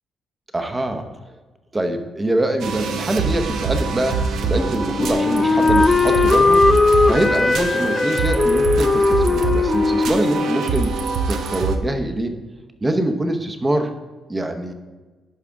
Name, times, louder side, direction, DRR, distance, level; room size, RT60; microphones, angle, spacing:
voice 1, 0.5-1.0 1.7-6.6 7.1-10.9 11.3-12.3 12.8-13.9 14.3-14.7, right 1 dB, 20° right, 7 dB, 0.9 m, -24 dB
sound 1, 2.6-11.8, right 4 dB, 75° right, 0.8 m, -24 dB
Wind instrument woodwind instrument, 4.5-11.4, left 3 dB, 25° left, 0.4 m, -19 dB
11.0 x 4.9 x 3.6 m, 1.2 s
cardioid pair, 90°, 0 cm